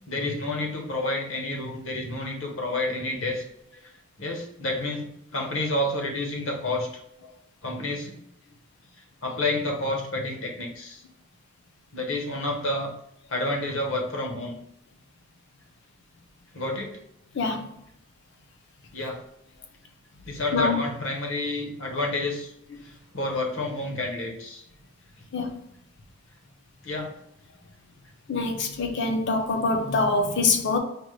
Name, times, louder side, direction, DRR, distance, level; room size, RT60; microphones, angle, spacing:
voice 1, 0.1-3.4 4.2-6.9 7.6-8.1 9.2-11.0 11.9-12.9 13.3-14.6 16.5-16.9 18.9-19.2 20.2-22.5 22.8-24.6 26.8-27.2, left 2 dB, 75° left, 0.9 m, -29 dB
voice 2, 17.3-17.7 20.5-20.8 25.3-25.6 28.3-30.8, left 3 dB, 55° left, 0.5 m, -24 dB
5.1 x 2.1 x 3.1 m
head